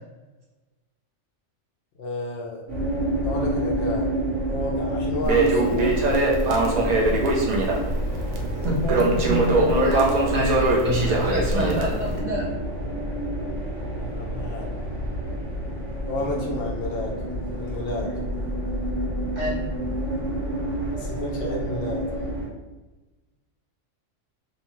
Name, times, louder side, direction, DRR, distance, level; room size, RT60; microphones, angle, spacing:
voice 1, 2.0-2.6 3.2-4.1 4.5-6.5 8.6-9.0 14.0-14.7 16.0-17.2 17.5-18.1 20.9-22.1, left 1 dB, 60° left, -1 dB, 0.7 m, -31 dB
sound 1, 2.7-22.5, right 1 dB, 70° right, 1.3 m, -29 dB
Crackle, 5.2-12.2, right 2 dB, 85° right, 0.3 m, -22 dB
voice 2, 8.6-10.0 10.3-12.5 19.3-19.6, equal, 45° right, -4 dB, 0.6 m, -27 dB
2.7 x 2.2 x 2.9 m, 1.2 s
omnidirectional pair, 1.3 m